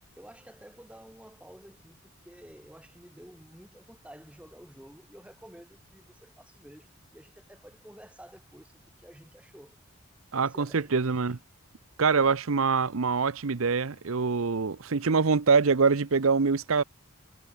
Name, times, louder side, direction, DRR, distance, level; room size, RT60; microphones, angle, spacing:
voice 1, 0.2-9.8 10.3-11.3, equal, 5° right, 2.1 m, -51 dB
voice 2, 10.3-11.4 12.0-16.8, right 5 dB, 70° right, 0.7 m, -24 dB
head